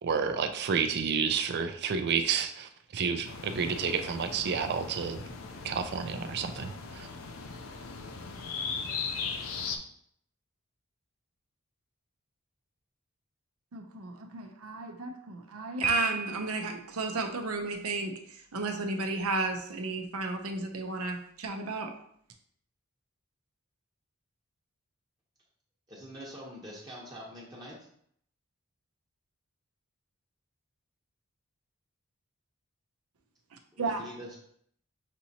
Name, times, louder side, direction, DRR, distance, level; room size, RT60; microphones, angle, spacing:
voice 1, 0.0-5.2 5.6-7.1, right 6 dB, 50° right, 8 dB, 0.4 m, -30 dB
sound 1, 3.3-9.8, left 5 dB, 70° left, 0.5 m, -38 dB
voice 2, 13.7-21.9 33.8-34.0, right 3 dB, 90° right, 5 dB, 0.7 m, -33 dB
Piano, 15.8-16.8, right 3 dB, 5° left, 0.5 m, -32 dB
voice 3, 25.9-27.7 33.7-34.4, equal, 20° right, -6 dB, 0.9 m, -44 dB
6.1 x 2.8 x 2.8 m, 0.66 s
head